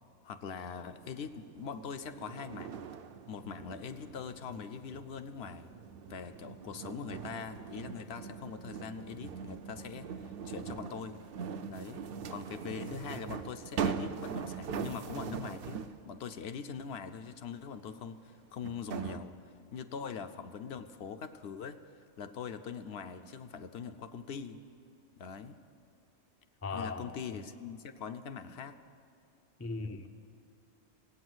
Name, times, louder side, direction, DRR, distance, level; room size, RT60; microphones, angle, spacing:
voice 1, 0.2-2.9 3.3-5.7 6.1-11.2 11.7-12.0 12.3-21.8 22.2-24.6 25.2-25.6 26.7-28.8, left 6 dB, 65° left, 0.8 m, -42 dB
sound 1, 0.9-16.1 17.8-17.9 18.6-19.2, right 6 dB, 60° right, 0.7 m, -41 dB
voice 2, 26.6-27.1 29.6-30.1, left 4 dB, 25° left, 0.3 m, -37 dB
17.0 x 8.4 x 7.8 m
omnidirectional pair, 1.2 m